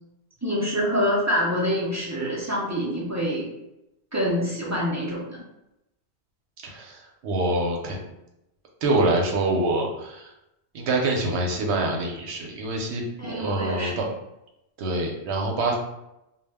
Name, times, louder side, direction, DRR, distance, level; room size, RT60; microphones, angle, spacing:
voice 1, 0.4-3.5 4.1-5.4 13.2-13.9, equal, 30° right, -6 dB, 0.3 m, -26 dB
voice 2, 6.6-8.1 8.8-10.3 10.7-14.1 14.8-15.8, right 2 dB, 75° right, 0 dB, 0.9 m, -25 dB
2.2 x 2.1 x 3.3 m, 0.88 s
omnidirectional pair, 1.1 m